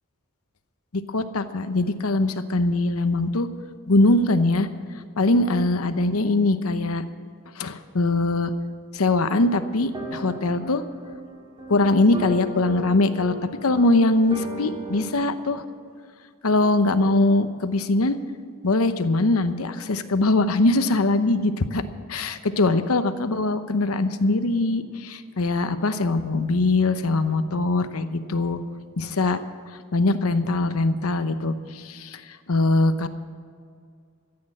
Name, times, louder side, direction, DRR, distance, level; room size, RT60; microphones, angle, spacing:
voice 1, 0.9-3.5 3.9-4.7 5.2-7.0 7.6-8.5 8.9-10.8 11.7-15.6 16.4-18.2 18.6-21.8 22.1-28.6 29.0-29.4 29.9-33.1, left 2 dB, 85° left, 10 dB, 0.9 m, -22 dB
sound 1, 9.9-15.1, equal, 25° right, 1.9 m, -36 dB
14.5 x 8.7 x 7.6 m, 2.2 s
head